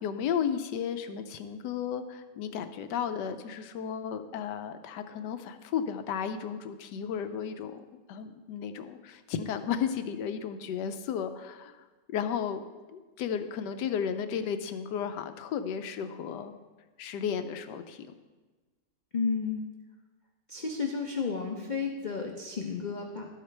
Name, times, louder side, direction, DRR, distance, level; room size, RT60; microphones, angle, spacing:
voice 1, 0.0-16.5 17.0-18.1, left 7 dB, 85° left, 9 dB, 1.2 m, -34 dB
voice 2, 19.1-19.6 20.5-23.3, left 5 dB, 60° left, 1 dB, 0.4 m, -32 dB
12.0 x 8.7 x 3.3 m, 1.3 s
omnidirectional pair, 1.8 m